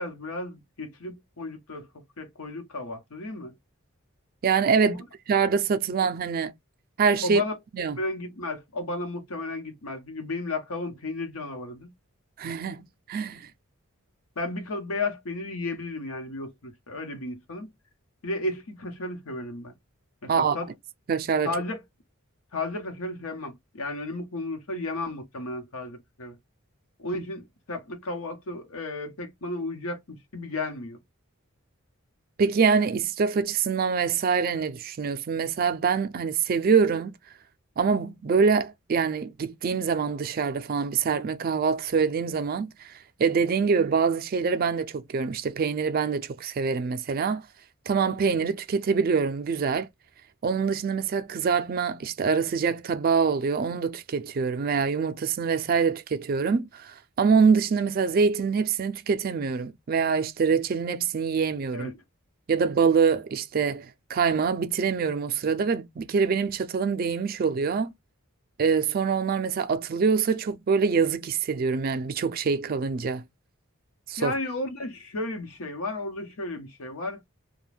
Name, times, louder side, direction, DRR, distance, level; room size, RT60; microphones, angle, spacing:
voice 1, 0.0-1.9 2.2-3.5 4.8-5.0 7.2-7.5 8.0-11.9 14.4-17.7 18.2-19.7 20.2-20.7 21.4-21.8 22.5-26.4 27.0-31.0 61.7-62.0 74.2-77.2, left 2 dB, 85° left, 0.9 m, -33 dB
voice 2, 4.4-5.0 5.3-6.5 7.0-7.4 7.7-8.0 12.4-12.8 13.1-13.5 20.3-20.6 21.1-21.5 27.1-27.2 32.4-37.2 37.8-42.9 43.2-47.4 47.9-49.9 50.4-61.9 62.5-67.9 68.6-73.2 74.1-74.3, right 5 dB, 45° right, 0.4 m, -25 dB
2.5 x 2.2 x 3.2 m
head